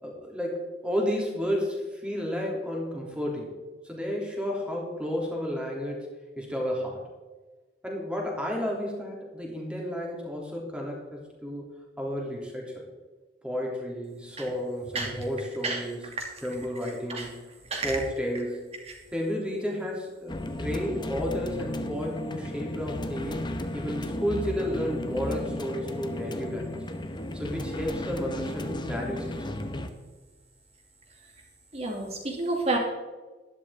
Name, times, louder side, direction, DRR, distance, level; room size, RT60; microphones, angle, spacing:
voice 1, 0.0-3.5 3.8-7.0 7.8-11.7 12.0-12.8 13.4-16.0 16.4-17.3 17.8-18.7 19.1-23.5 23.7-26.7 27.3-29.5, equal, 5° right, -2 dB, 3.1 m, -32 dB
voice 2, 14.9-15.3 15.6-15.8 16.2-16.3 17.1-17.3 17.7-18.0 18.9-19.0 31.7-32.8, right 3 dB, 35° right, 1 dB, 2.6 m, -30 dB
sound 1, 20.3-29.9, left 1 dB, 25° left, 0.9 m, -34 dB
12.5 x 11.5 x 3.7 m, 1.3 s
head